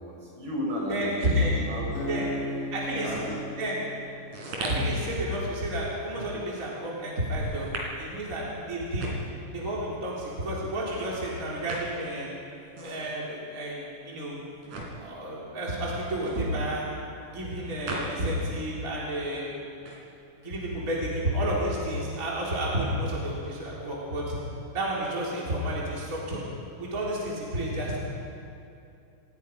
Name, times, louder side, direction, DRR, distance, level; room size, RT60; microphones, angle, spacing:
voice 1, 0.0-2.4 2.9-3.3, left 1 dB, 80° right, -4 dB, 7.5 m, -34 dB
voice 2, 0.9-1.6 2.1-2.3 2.7-3.1 3.6-3.8 4.6-9.1 9.5-12.3 12.8-14.5 14.9-16.9 17.3-19.5 20.4-24.4 24.7-26.4 26.8-28.0, equal, 25° right, -5 dB, 3.9 m, -30 dB
Acoustic guitar, 2.0-5.2, equal, 75° left, 4.2 m, -37 dB
sound 1, 3.1-18.6 18.9-20.5, right 2 dB, 60° right, 4.8 m, -40 dB
29.5 x 17.0 x 5.3 m, 2.6 s
omnidirectional pair, 3.8 m